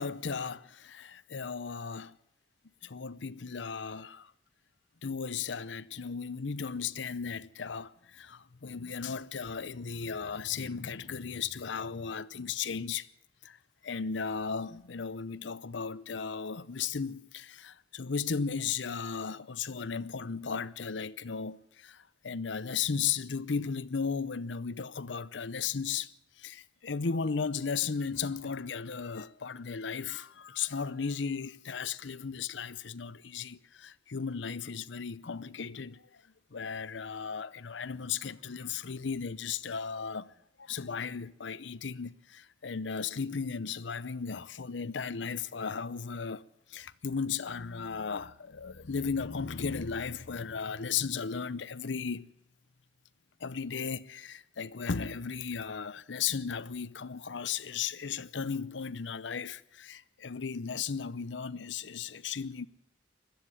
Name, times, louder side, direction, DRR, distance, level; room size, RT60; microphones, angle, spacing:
voice 1, 0.0-2.2 2.8-4.3 5.0-13.1 13.4-13.6 13.8-26.1 26.4-36.2 36.5-40.3 40.6-52.3 53.4-62.7, left 6 dB, 75° left, 0.7 m, -35 dB
21.0 x 13.5 x 9.8 m
head